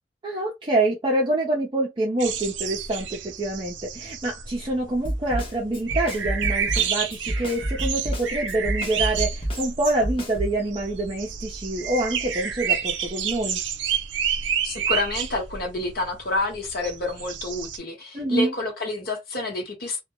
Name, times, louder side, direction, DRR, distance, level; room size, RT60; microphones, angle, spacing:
voice 1, 0.2-13.6 18.1-18.5, right 2 dB, 25° right, 0.5 m, -26 dB
sound 1, 2.2-17.8, right 8 dB, 90° right, 0.5 m, -30 dB
Snare drum, 5.0-10.6, right 1 dB, 30° left, 0.7 m, -29 dB
voice 2, 14.6-20.0, left 2 dB, 55° left, 1.0 m, -29 dB
2.2 x 2.0 x 2.9 m
head